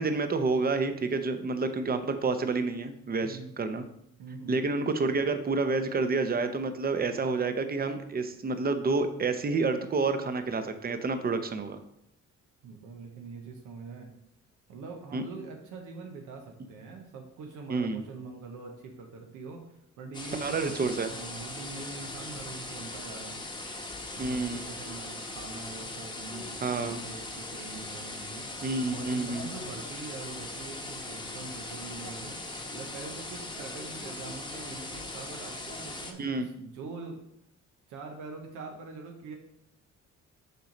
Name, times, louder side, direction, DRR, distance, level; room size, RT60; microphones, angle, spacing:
voice 1, 0.0-3.8 4.5-11.8 15.1-15.2 17.7-18.0 20.4-21.1 24.2-24.6 26.6-27.0 28.6-29.5 36.2-36.5, right 3 dB, 30° right, 9 dB, 0.7 m, -29 dB
voice 2, 3.2-3.5 4.2-4.6 12.6-14.1 14.7-23.4 24.1-28.5 28.9-32.4 32.7-37.2 37.9-39.4, right 4 dB, 85° right, 2 dB, 0.9 m, -43 dB
sound 1, 20.1-36.1, left 2 dB, 15° left, 1.0 m, -40 dB
6.7 x 3.1 x 5.1 m, 0.78 s
cardioid pair, 90°, 30 cm